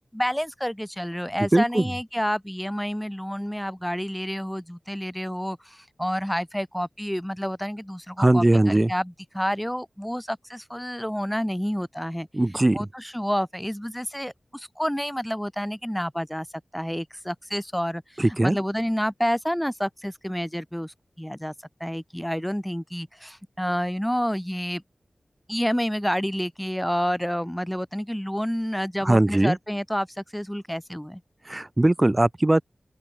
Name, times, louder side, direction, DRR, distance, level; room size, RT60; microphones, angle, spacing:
voice 1, 0.1-12.3 12.7-16.5 16.7-21.5 21.8-24.8 25.5-31.2, equal, 5° left, 3.9 m, -29 dB
voice 2, 1.5-1.8 8.2-8.9 12.3-12.8 18.2-18.6 29.0-29.6 31.5-32.6, right 1 dB, 25° right, 4.0 m, -20 dB
open air
wide cardioid pair, 55°, 0 cm